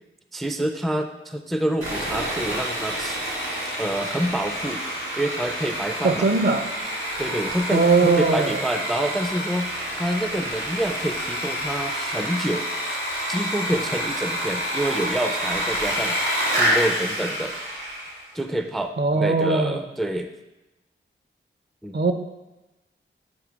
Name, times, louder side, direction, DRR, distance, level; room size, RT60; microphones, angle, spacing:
voice 1, 0.3-3.2 3.8-4.8 5.2-6.3 7.2-13.0 13.3-17.5 18.3-20.3 21.8-22.0, right 1 dB, ahead, 6 dB, 0.3 m, -27 dB
Sawing, 1.8-18.2, equal, 75° right, 2.2 m, -28 dB
voice 2, 6.0-6.7 7.7-8.6 19.0-19.8 21.9-22.1, right 3 dB, 55° right, 7 dB, 0.6 m, -20 dB
7.8 x 3.0 x 5.0 m, 1.0 s
wide cardioid pair, 110°, 21 cm